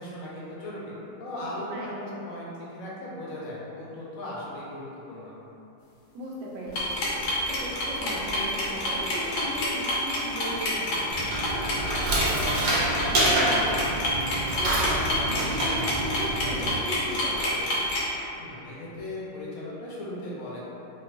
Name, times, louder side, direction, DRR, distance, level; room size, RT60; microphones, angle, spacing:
voice 1, 0.0-5.3 18.4-20.6, left 1 dB, 60° left, -6 dB, 1.0 m, -37 dB
voice 2, 6.1-17.7, right 1 dB, 85° right, -4 dB, 1.4 m, -37 dB
sound 1, 6.7-18.0, left 1 dB, 90° left, 1.5 m, -28 dB
sound 2, 11.1-16.7, right 1 dB, 60° right, 1.2 m, -27 dB
4.2 x 2.9 x 2.6 m, 2.9 s
omnidirectional pair, 2.0 m